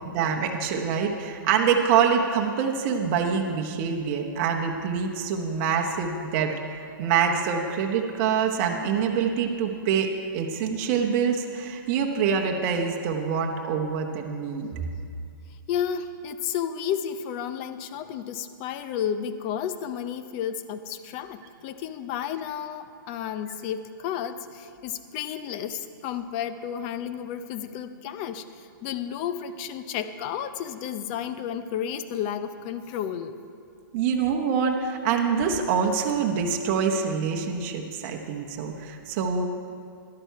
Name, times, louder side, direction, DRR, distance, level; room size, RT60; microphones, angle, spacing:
voice 1, 0.1-6.5 6.8-14.7 33.9-39.5, right 6 dB, 35° right, 2 dB, 0.9 m, -25 dB
voice 2, 15.7-33.4, left 9 dB, 30° left, 12 dB, 0.5 m, -32 dB
11.5 x 9.0 x 5.7 m, 2.4 s
hypercardioid pair, 150°, 12 cm